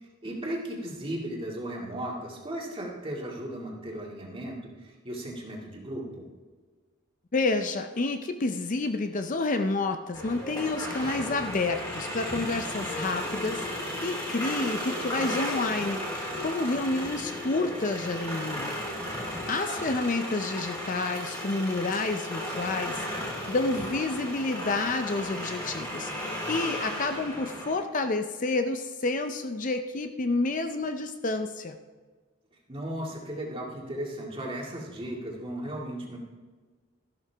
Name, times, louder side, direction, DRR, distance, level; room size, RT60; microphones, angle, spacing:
voice 1, 0.2-6.3 19.7-19.8 32.7-36.2, right 1 dB, 25° right, -2 dB, 2.2 m, -36 dB
voice 2, 7.3-13.7 14.0-18.8 19.5-31.8, left 3 dB, 40° left, 7 dB, 0.5 m, -29 dB
sound 1, 10.1-27.7, equal, 15° left, 3.4 m, -34 dB
13.5 x 12.0 x 3.4 m, 1.4 s
head